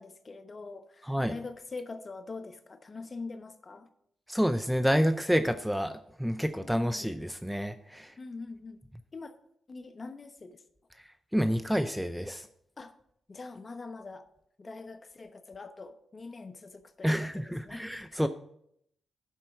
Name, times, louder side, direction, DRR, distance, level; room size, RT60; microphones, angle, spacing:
voice 1, 0.0-3.9 8.2-8.8 9.1-9.3 9.7-10.6 12.8-12.9 13.3-14.3 14.6-17.9 18.2-18.3, left 3 dB, 35° left, 9 dB, 1.0 m, -43 dB
voice 2, 1.0-1.3 4.3-8.2 11.0-12.5 17.0-18.3, equal, ahead, 10 dB, 0.6 m, -29 dB
11.5 x 4.4 x 6.8 m, 0.71 s
cardioid pair, 70°, 0 cm